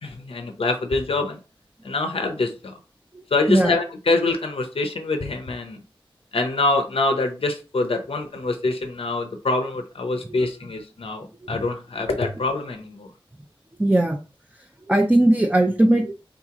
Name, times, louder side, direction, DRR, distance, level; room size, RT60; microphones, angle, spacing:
voice 1, 0.0-1.4 1.8-2.8 3.3-5.8 6.3-13.1, left 2 dB, 85° left, 5 dB, 0.6 m, -25 dB
voice 2, 3.1-3.7 10.3-10.4 11.4-11.6 13.8-14.2 14.9-16.1, right 1 dB, 15° right, 1 dB, 0.7 m, -19 dB
3.8 x 2.9 x 3.6 m, 0.33 s
wide cardioid pair, 45°, 10 cm